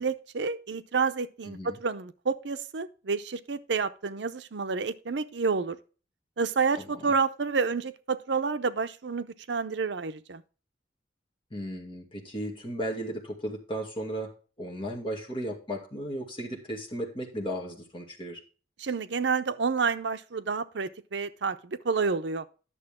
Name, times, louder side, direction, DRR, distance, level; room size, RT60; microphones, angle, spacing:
voice 1, 0.0-5.8 6.4-10.4 18.8-22.5, right 5 dB, 70° right, 0.6 m, -29 dB
voice 2, 1.5-1.8 6.8-7.1 11.5-14.3 14.6-18.4, equal, 30° left, 2.2 m, -35 dB
11.0 x 6.8 x 3.6 m
head